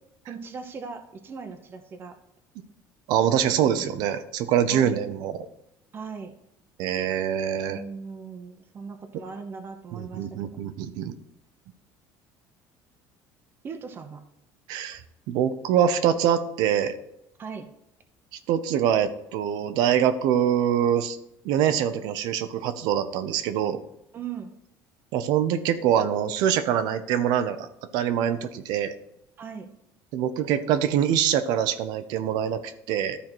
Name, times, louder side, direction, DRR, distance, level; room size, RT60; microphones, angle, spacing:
voice 1, 0.3-2.2 4.7-5.0 5.9-6.3 7.6-10.3 13.6-14.2 17.4-17.7 24.1-24.5 29.4-29.7, right 5 dB, 30° right, 5 dB, 0.9 m, -39 dB
voice 2, 3.1-5.5 6.8-7.8 9.9-11.1 14.7-15.0 15.3-17.0 18.3-21.2 21.4-23.8 25.1-28.9 30.1-33.2, right 9 dB, 70° right, 11 dB, 0.9 m, -24 dB
13.0 x 4.6 x 4.5 m, 0.83 s
cardioid pair, 145°, 7 cm